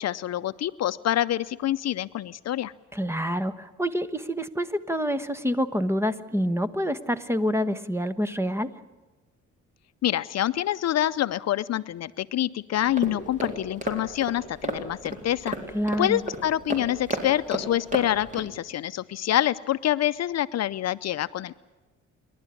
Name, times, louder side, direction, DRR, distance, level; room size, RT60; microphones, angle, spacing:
voice 1, 0.0-2.7 10.0-15.6 16.0-21.5, left 12 dB, 60° left, 14 dB, 0.6 m, -26 dB
voice 2, 2.9-8.8 15.7-16.2, equal, 10° right, 14 dB, 1.2 m, -27 dB
sound 1, 12.8-18.5, right 1 dB, 25° right, 3.8 m, -34 dB
28.0 x 12.0 x 9.7 m, 1.2 s
cardioid pair, 90°, 30 cm